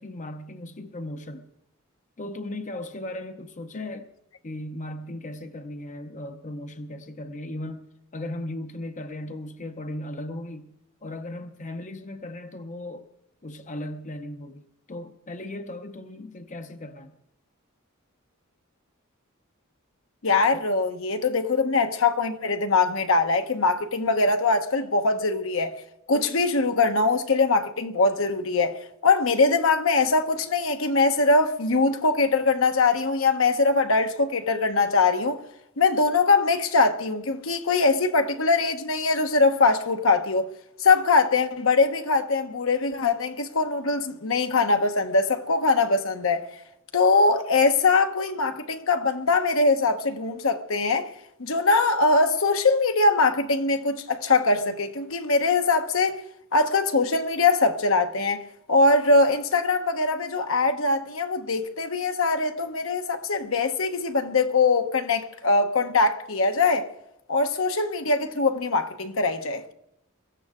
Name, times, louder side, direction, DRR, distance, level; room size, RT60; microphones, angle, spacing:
voice 1, 0.0-1.5 2.2-4.1 4.4-10.7 11.0-13.1 13.4-17.1 20.5-20.7, left 1 dB, 35° left, 0.8 m, -37 dB
voice 2, 20.2-25.7 26.1-35.4 35.8-40.5 40.8-46.4 46.9-51.1 51.4-56.2 56.5-58.4 58.7-66.9 67.3-69.7, left 3 dB, 65° left, 1.1 m, -22 dB
23.0 x 15.0 x 3.7 m
head